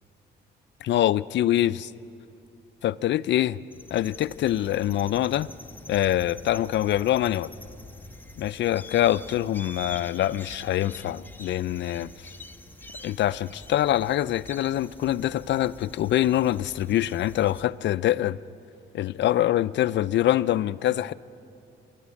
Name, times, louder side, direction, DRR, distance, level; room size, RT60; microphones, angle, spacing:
voice 1, 0.8-1.9 2.8-3.6 3.9-5.5 5.9-7.5 8.4-12.3 13.0-18.4 18.9-21.1, left 13 dB, 65° left, 17 dB, 0.5 m, -24 dB
sound 1, 3.7-17.7, left 2 dB, 10° left, 0.9 m, -45 dB
28.0 x 11.5 x 8.5 m, 2.7 s
cardioid pair, 90°, 20 cm